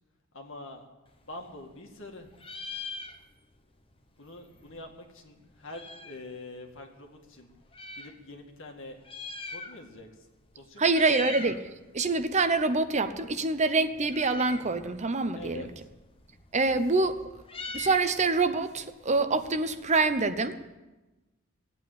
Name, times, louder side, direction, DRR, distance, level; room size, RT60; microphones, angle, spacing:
voice 1, 0.3-0.8 1.2-2.3 4.2-7.5 8.0-9.0 9.5-10.1 10.5-11.3 15.3-15.7, left 2 dB, 65° left, 3 dB, 2.2 m, -45 dB
Meow, 1.1-2.1 2.3-3.6 3.9-4.0 4.2-6.3 6.9-8.1 8.9-10.1 10.4-10.6 10.8-11.6 12.0-19.8, left 3 dB, 25° left, 1.1 m, -43 dB
voice 2, 10.8-11.7 11.9-15.7 16.5-17.3 17.7-20.6, right 3 dB, 35° right, 10 dB, 0.8 m, -26 dB
16.0 x 8.7 x 9.1 m, 1.1 s
head